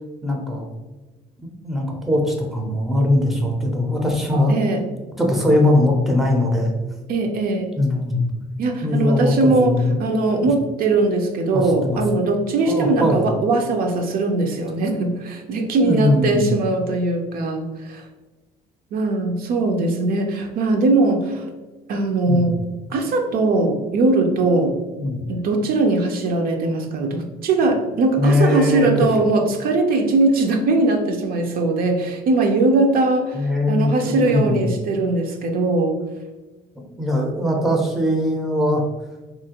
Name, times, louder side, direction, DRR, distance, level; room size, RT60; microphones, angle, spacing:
voice 1, 0.2-0.7 1.4-4.6 5.2-6.7 7.8-8.3 8.8-10.0 11.5-12.2 12.7-13.3 15.8-16.5 22.3-22.5 25.0-25.2 28.2-29.1 33.3-34.6 36.8-38.8, left 1 dB, ahead, 0 dB, 0.5 m, -20 dB
voice 2, 4.5-4.8 7.1-7.7 8.6-18.0 18.9-21.4 21.9-22.6 22.9-24.8 25.3-36.0, right 2 dB, 60° right, 4 dB, 0.4 m, -20 dB
3.0 x 2.4 x 2.8 m, 1.2 s
cardioid pair, 110°, 17 cm